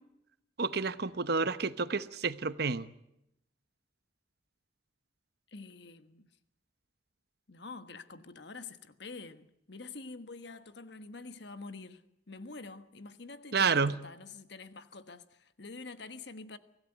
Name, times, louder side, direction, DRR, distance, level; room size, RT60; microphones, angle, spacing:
voice 1, 0.6-2.9 13.5-14.0, right 4 dB, 55° right, 0.9 m, -29 dB
voice 2, 5.5-6.3 7.5-16.6, left 3 dB, 60° left, 1.4 m, -47 dB
24.5 x 16.5 x 9.0 m
head